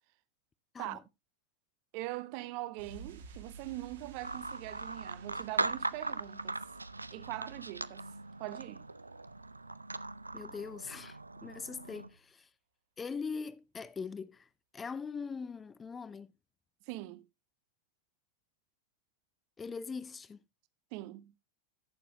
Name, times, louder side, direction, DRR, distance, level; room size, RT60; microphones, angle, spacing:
voice 1, 1.9-6.6 7.1-8.1 8.4-8.8 16.9-17.3 20.9-21.3, right 18 dB, 45° right, 0.8 m, -42 dB
sound 1, 2.8-9.3 9.5-9.7, right 4 dB, 65° right, 2.0 m, -55 dB
sound 2, 4.2-12.1, right 2 dB, 80° right, 0.4 m, -40 dB
voice 2, 10.3-12.5 13.0-16.3 19.6-20.4, left 5 dB, 15° left, 0.4 m, -41 dB
15.5 x 6.8 x 2.9 m
figure-of-eight pair, 90°, 0 cm